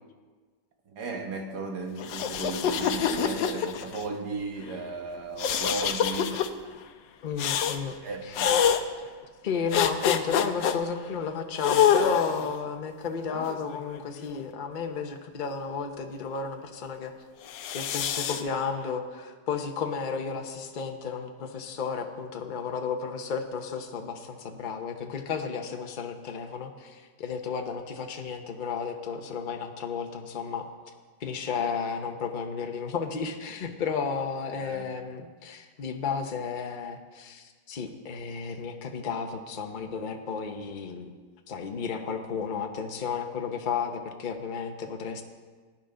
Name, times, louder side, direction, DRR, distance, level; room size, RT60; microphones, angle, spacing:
voice 1, 0.9-6.5 8.0-8.7 34.6-34.8, right 3 dB, 60° right, 3 dB, 1.9 m, -35 dB
sound 1, 2.0-4.0 5.4-6.5 7.4-7.8 8.4-8.8 9.7-10.8 11.6-12.5 13.3-14.4 17.5-18.4, left 8 dB, 80° left, 1.4 m, -26 dB
voice 2, 7.2-8.0 8.2-8.5 9.4-17.1 17.7-30.7 31.2-41.1 41.5-45.2, left 6 dB, 40° left, 5 dB, 0.8 m, -33 dB
17.5 x 10.5 x 3.9 m, 1.4 s
omnidirectional pair, 1.9 m